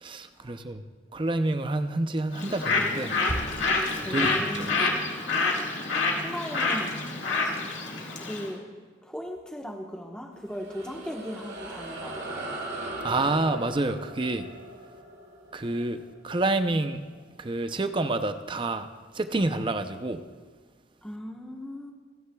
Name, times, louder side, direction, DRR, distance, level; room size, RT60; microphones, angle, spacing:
voice 1, 0.0-0.8 1.1-3.1 4.1-4.9 13.0-14.5 15.5-17.0 17.4-18.9 19.1-20.2, right 2 dB, 25° right, 9 dB, 0.6 m, -28 dB
Bird, 2.3-8.5, left 3 dB, 90° left, 1.9 m, -27 dB
voice 2, 4.0-5.0 6.2-7.0 8.2-8.6 9.0-12.7 21.0-21.9, equal, 5° left, 1 dB, 1.1 m, -38 dB
sound 1, 10.3-17.1, right 1 dB, 65° right, 2.3 m, -39 dB
27.5 x 9.9 x 2.3 m, 1.5 s
head